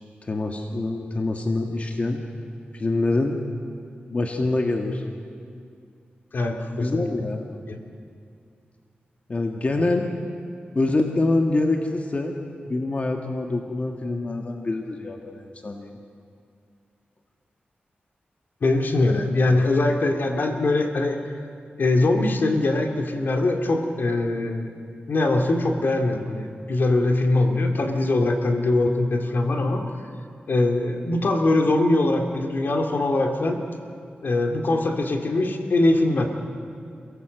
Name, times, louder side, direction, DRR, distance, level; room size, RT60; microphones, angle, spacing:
voice 1, 0.2-2.2 2.7-3.4 4.1-5.0 6.8-7.5 9.3-10.1 10.8-12.3 12.7-16.0, left 2 dB, 40° left, 3 dB, 1.7 m, -25 dB
voice 2, 6.3-7.0 7.7-7.8 18.6-21.3 21.8-24.7 25.1-29.8 30.5-33.6 34.2-36.3, left 2 dB, 65° left, 4 dB, 2.2 m, -22 dB
28.0 x 17.0 x 7.8 m, 2.3 s
wide cardioid pair, 95°, 4 cm